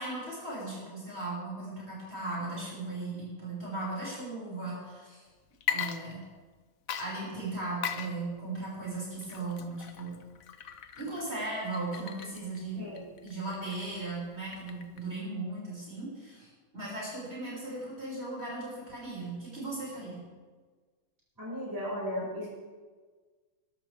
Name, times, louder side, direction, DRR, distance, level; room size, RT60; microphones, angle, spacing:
voice 1, 0.0-5.2 5.7-6.2 7.0-10.2 10.9-12.8 13.2-20.2, right 2 dB, 40° right, -6 dB, 6.2 m, -37 dB
Water / Liquid, 5.5-6.6 6.9-15.1, left 8 dB, 60° left, 1.2 m, -39 dB
voice 2, 12.7-13.0 21.4-22.5, equal, 10° right, -6 dB, 6.0 m, -35 dB
22.0 x 14.0 x 3.5 m, 1.4 s
omnidirectional pair, 1.8 m